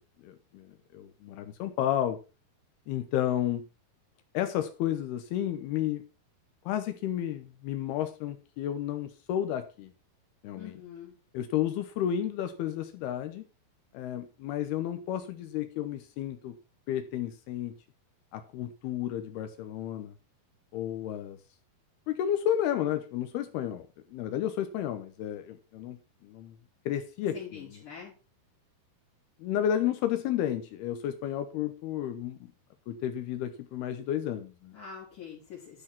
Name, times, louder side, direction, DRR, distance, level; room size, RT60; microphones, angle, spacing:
voice 1, 0.2-2.2 2.9-3.7 4.3-6.0 6.7-9.9 10.4-10.8 11.3-13.4 13.9-16.6 16.9-17.8 18.3-20.1 20.7-21.4 22.1-23.8 24.1-26.6 26.9-27.8 29.4-32.5 32.9-34.8, left 11 dB, 80° left, 9 dB, 2.9 m, -32 dB
voice 2, 10.6-11.1 27.3-28.1 34.7-35.8, left 7 dB, 55° left, -6 dB, 5.1 m, -44 dB
12.0 x 6.3 x 5.8 m, 0.32 s
omnidirectional pair, 4.7 m